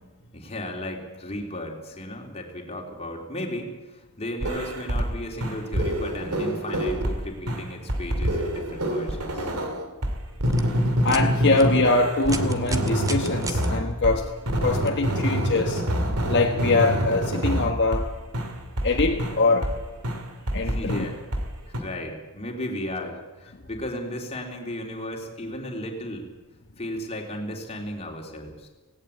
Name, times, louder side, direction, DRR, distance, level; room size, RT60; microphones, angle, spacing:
voice 1, 0.3-9.7 20.6-21.2 21.7-26.3 26.8-28.7, left 1 dB, 30° left, 1 dB, 3.4 m, -35 dB
sound 1, 4.4-5.1 5.4-7.2 7.5-14.2 14.5-18.1 18.3-19.8 20.0-21.5 21.7-21.8, equal, 75° right, 2.7 m, -26 dB
sound 2, 10.4-10.6 11.0-11.2 11.6-11.7 12.2-13.7 14.9-15.0 15.8-15.9, right 2 dB, 15° right, 1.3 m, -33 dB
voice 2, 11.0-14.3 14.6-15.8 16.3-18.1 18.8-19.8 20.5-21.0, left 3 dB, 55° left, 2 dB, 1.4 m, -23 dB
18.0 x 17.5 x 8.3 m, 1.2 s
head